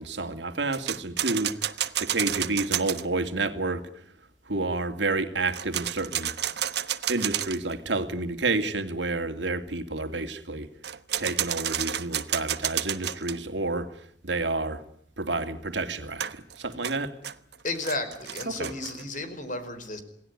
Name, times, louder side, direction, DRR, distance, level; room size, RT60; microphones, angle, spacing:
voice 1, 0.0-1.5 2.0-3.9 4.5-6.3 7.1-10.7 11.2-14.8 15.2-17.1 18.5-18.7, right 3 dB, 85° right, 2.6 m, -29 dB
sound 1, 0.7-3.0 5.5-7.7 10.8-13.4 16.2-19.0, right 11 dB, 65° right, 1.2 m, -30 dB
voice 2, 17.6-20.0, left 2 dB, 45° left, 4.9 m, -33 dB
28.0 x 19.0 x 9.8 m
head